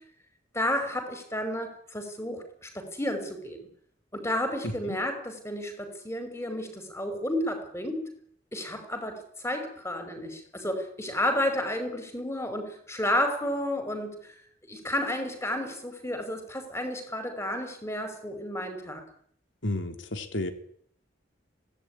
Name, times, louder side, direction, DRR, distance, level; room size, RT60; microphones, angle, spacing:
voice 1, 0.5-3.7 4.1-8.1 8.5-14.4 14.6-19.0, left 1 dB, 15° left, 7 dB, 5.6 m, -31 dB
voice 2, 4.6-5.0 19.6-20.5, left 1 dB, 85° left, 8 dB, 3.2 m, -32 dB
24.5 x 18.0 x 9.9 m, 0.63 s
head